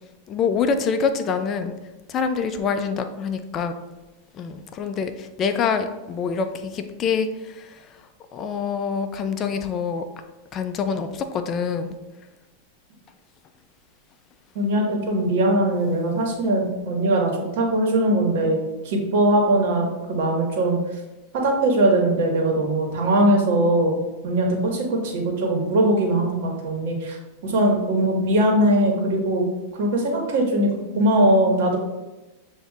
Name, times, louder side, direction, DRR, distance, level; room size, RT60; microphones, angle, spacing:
voice 1, 0.3-1.7 2.1-3.8 4.3-10.0 10.5-11.9, left 6 dB, 35° left, 8 dB, 0.4 m, -26 dB
voice 2, 14.5-18.6 18.8-20.8 21.4-23.9 24.2-27.2 27.4-29.4 29.7-31.8, right 1 dB, 65° right, 0 dB, 1.4 m, -21 dB
7.9 x 2.7 x 2.4 m, 1.1 s
hypercardioid pair, 120°, 0 cm